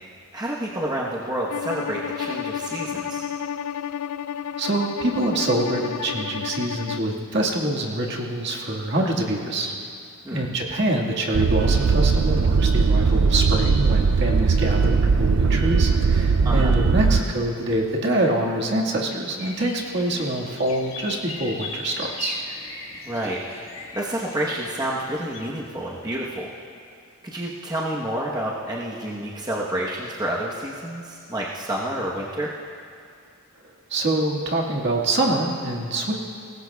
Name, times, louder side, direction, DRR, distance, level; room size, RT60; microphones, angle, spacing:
voice 1, 0.3-3.2 10.2-10.4 16.4-16.8 23.0-23.4 23.9-26.5 27.2-32.5, right 1 dB, 20° right, -5 dB, 1.0 m, -29 dB
Bowed string instrument, 1.5-7.1, left 8 dB, 85° left, 0.3 m, -31 dB
voice 2, 4.6-9.7 10.3-22.4 33.9-36.1, right 1 dB, 50° right, -2 dB, 1.8 m, -25 dB
sound 1, 11.3-17.2, right 4 dB, 70° right, 0.4 m, -19 dB
sound 2, 19.4-25.5, left 3 dB, 60° left, 1.6 m, -38 dB
24.0 x 19.5 x 2.3 m, 2.4 s
head